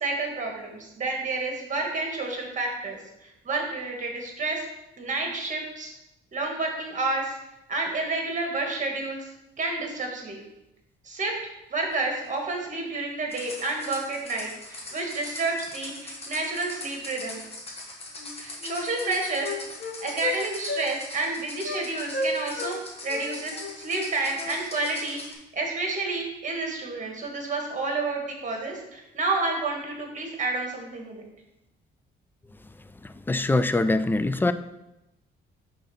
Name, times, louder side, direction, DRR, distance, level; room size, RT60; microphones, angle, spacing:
voice 1, 0.0-3.0 3.4-4.7 5.0-5.9 6.3-7.4 7.7-9.3 9.6-10.4 11.0-11.4 11.7-17.4 18.4-19.5 20.0-22.8 23.0-31.2, right 3 dB, 40° right, 1 dB, 1.8 m, -30 dB
sound 1, 13.3-25.3, left 2 dB, 30° left, 1.5 m, -41 dB
Wind instrument woodwind instrument, 18.2-18.3 18.6-20.4 20.7-20.9 21.1-21.3 21.6-21.8 22.1-22.8 23.1-25.0, left 2 dB, 50° left, 1.1 m, -33 dB
voice 2, 33.0-34.5, left 2 dB, 10° left, 11 dB, 0.3 m, -23 dB
5.5 x 3.8 x 5.5 m, 0.89 s
cardioid pair, 90°, 20 cm